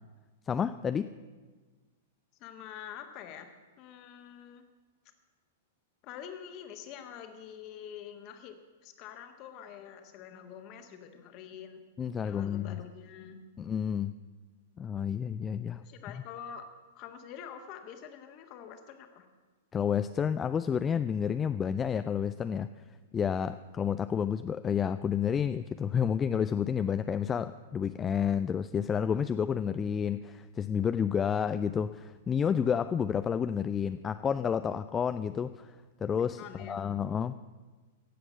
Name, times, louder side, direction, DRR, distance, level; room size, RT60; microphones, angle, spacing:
voice 1, 0.5-1.1 12.0-12.8 13.6-14.1 14.8-15.8 19.7-22.7 23.1-35.7 36.0-37.3, left 7 dB, 20° left, 12 dB, 0.4 m, -30 dB
voice 2, 2.4-3.5 3.8-4.6 6.0-11.8 12.2-13.4 15.8-16.7 17.0-19.3 36.4-37.0, left 8 dB, 35° left, 6 dB, 1.6 m, -46 dB
17.0 x 7.8 x 7.8 m, 1.3 s
figure-of-eight pair, 100°, 0 cm